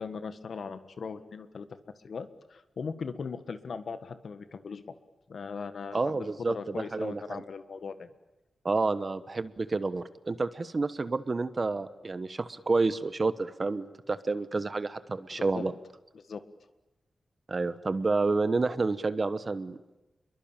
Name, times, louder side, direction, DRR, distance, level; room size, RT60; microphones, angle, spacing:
voice 1, 0.0-1.7 2.0-5.0 5.3-8.1 15.5-15.6 16.1-16.4, left 5 dB, 70° left, 10 dB, 1.6 m, -39 dB
voice 2, 5.9-7.4 8.6-15.7 17.5-20.0, right 3 dB, 35° right, 13 dB, 1.1 m, -29 dB
29.5 x 22.5 x 9.0 m, 1.0 s
wide cardioid pair, 135°, 0 cm